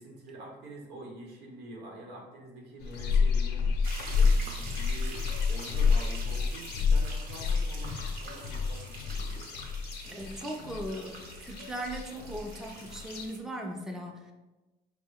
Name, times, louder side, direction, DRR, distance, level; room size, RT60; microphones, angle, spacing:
voice 1, 0.0-3.8 4.2-9.5, right 1 dB, 85° right, -1 dB, 1.1 m, -46 dB
sound 1, 2.8-13.3, left 5 dB, 90° left, 0.6 m, -29 dB
sound 2, 3.8-13.4, right 3 dB, 60° right, 0.9 m, -46 dB
voice 2, 10.0-14.3, right 1 dB, 5° right, 1 dB, 0.5 m, -38 dB
4.7 x 2.1 x 4.5 m, 1.1 s
cardioid pair, 110°, 17 cm